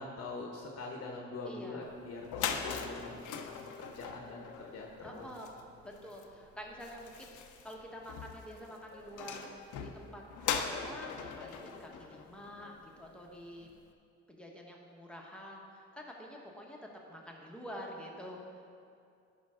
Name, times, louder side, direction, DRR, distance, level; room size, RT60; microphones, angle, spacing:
voice 1, 0.0-5.3, left 3 dB, 50° left, 0 dB, 1.0 m, -44 dB
voice 2, 1.5-1.9 5.0-5.5 5.8-13.7 14.3-18.4, equal, 5° left, -1 dB, 1.3 m, -48 dB
sound 1, 1.9-2.0 2.2-13.0, left 7 dB, 80° left, 0.7 m, -41 dB
11.0 x 5.4 x 3.8 m, 2.4 s
cardioid pair, 90°, 30 cm